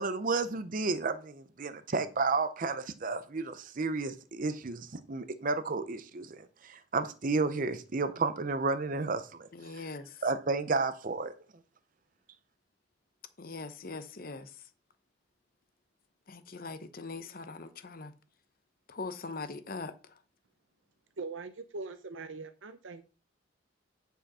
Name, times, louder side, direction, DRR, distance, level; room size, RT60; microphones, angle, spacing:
voice 1, 0.0-9.5 10.2-11.3, right 3 dB, 45° right, 0.6 m, -32 dB
voice 2, 9.5-10.2 13.4-14.7 16.3-18.1 18.9-20.2, left 3 dB, 50° left, 0.9 m, -42 dB
voice 3, 21.2-23.1, right 3 dB, 85° right, 0.7 m, -41 dB
9.8 x 5.7 x 4.2 m
head